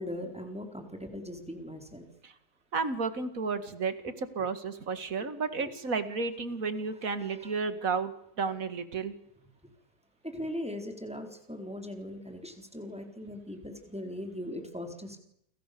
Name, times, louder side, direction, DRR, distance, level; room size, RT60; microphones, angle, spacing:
voice 1, 0.0-2.1 7.4-7.5 10.2-15.2, left 1 dB, 5° right, 4 dB, 4.2 m, -39 dB
voice 2, 2.7-8.1 8.4-9.1, right 4 dB, 50° right, 12 dB, 2.4 m, -32 dB
29.5 x 24.5 x 6.9 m, 0.74 s
omnidirectional pair, 1.9 m